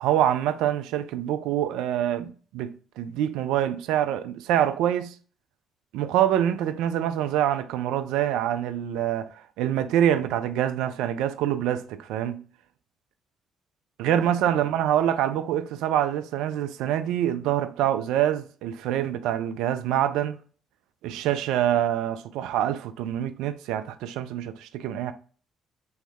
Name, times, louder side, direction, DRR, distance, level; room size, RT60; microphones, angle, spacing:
voice 1, 0.0-5.2 5.9-12.4 14.0-20.4 21.0-25.1, right 11 dB, 75° right, 0.3 m, -25 dB
3.5 x 3.1 x 3.4 m
hypercardioid pair, 50°, 0 cm